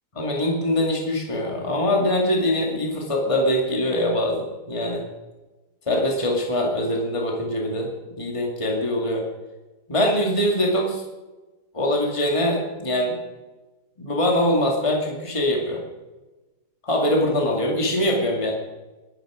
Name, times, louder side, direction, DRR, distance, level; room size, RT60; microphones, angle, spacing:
voice 1, 0.2-5.0 5.9-7.9 8.2-9.2 9.9-11.0 11.7-13.2 14.0-15.8 16.8-18.5, left 1 dB, 20° left, 0 dB, 2.3 m, -23 dB
21.5 x 12.5 x 5.1 m, 1.2 s
omnidirectional pair, 1.7 m